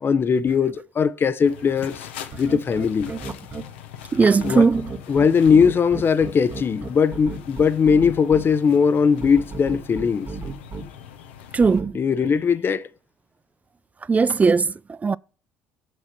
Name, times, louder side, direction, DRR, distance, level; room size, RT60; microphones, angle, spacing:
voice 1, 0.0-2.1 2.4-3.1 4.4-4.7 5.1-10.3 11.9-12.8, left 6 dB, 40° left, 0.7 m, -19 dB
sound 1, 1.4-11.8, left 9 dB, 90° left, 0.8 m, -42 dB
sound 2, 2.3-3.6 4.4-8.4 9.2-10.8 11.6-11.9, right 3 dB, 40° right, 1.6 m, -33 dB
voice 2, 4.1-4.9 11.5-11.9 14.1-14.7 15.0-15.2, right 4 dB, 25° right, 0.3 m, -18 dB
6.3 x 6.1 x 5.8 m
hypercardioid pair, 65°, 6 cm